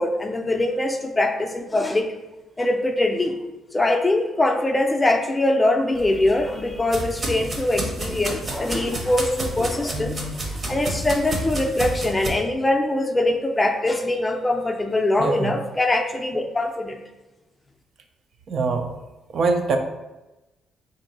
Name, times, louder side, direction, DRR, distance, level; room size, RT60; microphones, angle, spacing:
voice 1, 0.0-2.1 2.6-3.4 3.7-17.0, left 1 dB, 20° left, 4 dB, 0.5 m, -23 dB
sound 1, 5.9-12.3, right 1 dB, 45° right, 0.8 m, -30 dB
voice 2, 15.2-15.5 18.5-18.9 19.3-19.8, right 4 dB, 60° right, 5 dB, 0.4 m, -22 dB
3.5 x 2.6 x 4.0 m, 1.0 s
cardioid pair, 90°, 0 cm